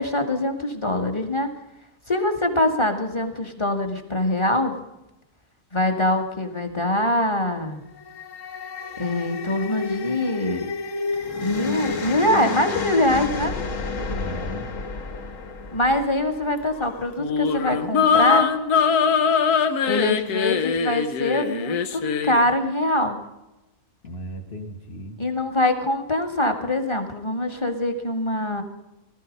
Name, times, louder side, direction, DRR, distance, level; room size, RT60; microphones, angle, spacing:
voice 1, 0.0-1.5 2.1-4.7 5.7-7.8 9.0-10.7 11.4-13.5 15.7-18.5 19.8-23.2 25.2-28.6, left 1 dB, 20° left, 5 dB, 1.7 m, -23 dB
sound 1, 7.8-17.1, left 3 dB, 55° left, 1.6 m, -31 dB
voice 2, 14.0-14.7 24.0-25.2, right 1 dB, 40° left, 3 dB, 2.2 m, -36 dB
sound 2, 17.2-22.4, left 6 dB, 80° left, 1.4 m, -22 dB
18.5 x 13.0 x 5.3 m, 0.93 s
omnidirectional pair, 1.6 m